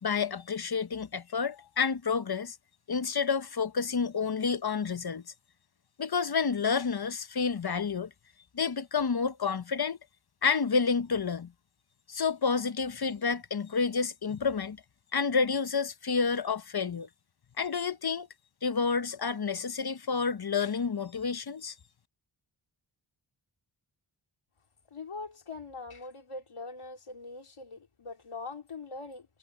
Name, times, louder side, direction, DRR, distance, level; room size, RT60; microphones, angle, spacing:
voice 1, 0.0-2.6 2.9-5.2 6.0-8.1 8.5-10.0 10.4-11.5 12.1-14.8 15.1-17.1 17.6-18.3 18.6-21.7, left 5 dB, 50° left, 0.9 m, -29 dB
voice 2, 24.9-29.4, left 3 dB, 90° left, 2.7 m, -42 dB
cardioid pair, 40°, 49 cm